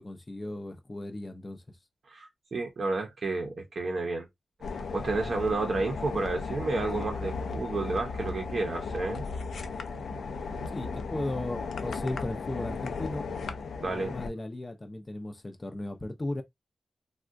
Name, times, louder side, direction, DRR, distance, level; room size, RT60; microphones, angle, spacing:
voice 1, 0.0-1.6 10.7-13.3 13.8-16.4, left 1 dB, 20° left, 0.5 m, -36 dB
voice 2, 2.1-4.3 4.7-9.2 13.8-14.1, right 3 dB, 50° right, 0.6 m, -31 dB
sound 1, 4.6-14.3, left 4 dB, 80° left, 0.5 m, -36 dB
3.5 x 2.2 x 2.4 m
wide cardioid pair, 160°, 0 cm